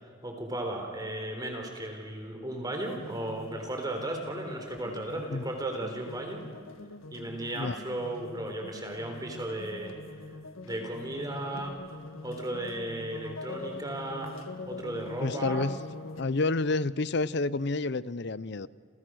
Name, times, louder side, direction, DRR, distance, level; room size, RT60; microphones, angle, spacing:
voice 1, 0.0-6.4 7.1-9.9 10.6-11.7 12.2-14.4 14.7-15.7, right 1 dB, 20° right, 3 dB, 3.9 m, -35 dB
sound 1, 2.7-16.2, left 2 dB, 85° left, 1.8 m, -43 dB
voice 2, 15.2-15.8 16.2-18.7, left 3 dB, 55° left, 18 dB, 0.6 m, -29 dB
29.5 x 29.0 x 6.3 m, 2.2 s
head